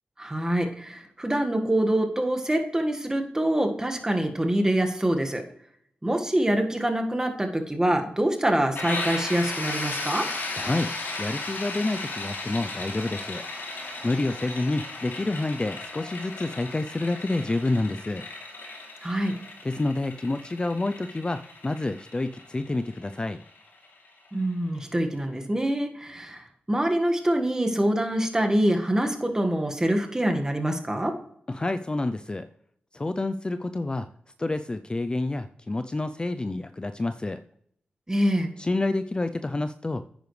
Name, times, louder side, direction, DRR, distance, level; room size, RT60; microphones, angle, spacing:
voice 1, 0.2-5.4 6.0-10.3 19.0-19.3 24.3-31.2 38.1-38.5, right 1 dB, 15° right, 4 dB, 1.7 m, -25 dB
sound 1, 8.8-24.3, left 2 dB, 75° left, 2.9 m, -36 dB
voice 2, 10.5-10.9 11.2-13.4 14.0-18.2 19.6-23.4 31.5-32.5 32.9-34.1 34.4-37.4 38.6-40.0, left 2 dB, 25° left, 10 dB, 0.4 m, -28 dB
10.0 x 9.1 x 3.3 m, 0.68 s
cardioid pair, 70°, 4 cm